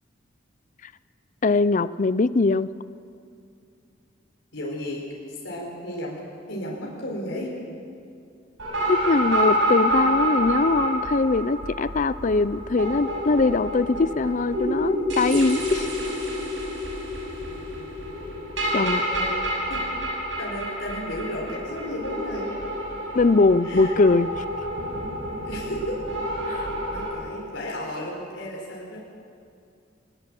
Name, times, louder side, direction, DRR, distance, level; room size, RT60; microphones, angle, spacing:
voice 1, 1.4-2.7 8.9-15.9 18.7-19.0 23.1-24.4 26.5-26.7, left 3 dB, 40° left, 16 dB, 0.5 m, -21 dB
voice 2, 4.5-5.0 5.3-6.2 6.5-7.5 18.7-19.4 19.7-19.9 20.4-22.5 23.6-23.9 25.4-26.0 26.4-29.0, left 1 dB, 75° left, -3 dB, 4.7 m, -34 dB
sound 1, 8.6-27.1, equal, 85° right, 6.9 m, -28 dB
22.5 x 19.5 x 7.7 m, 2.5 s
head